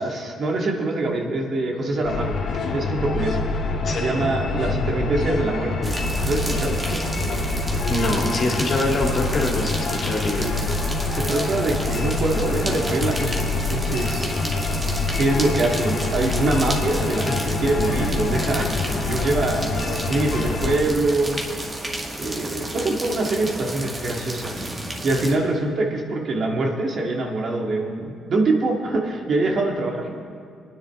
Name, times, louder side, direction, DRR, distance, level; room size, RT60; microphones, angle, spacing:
voice 1, 0.0-2.4 2.7-3.4 3.9-5.9 6.2-7.0 11.1-14.3 15.2-21.4 22.2-24.7 25.0-30.1, right 2 dB, 55° right, 0 dB, 2.0 m, -24 dB
sound 1, 2.0-20.8, left 3 dB, 70° left, 1.5 m, -26 dB
voice 2, 3.8-4.2 7.9-10.5, left 2 dB, 50° left, 0 dB, 2.5 m, -24 dB
sound 2, 5.8-25.4, right 1 dB, 25° right, 1.8 m, -32 dB
22.5 x 9.8 x 3.7 m, 2.2 s
cardioid pair, 90°, 0 cm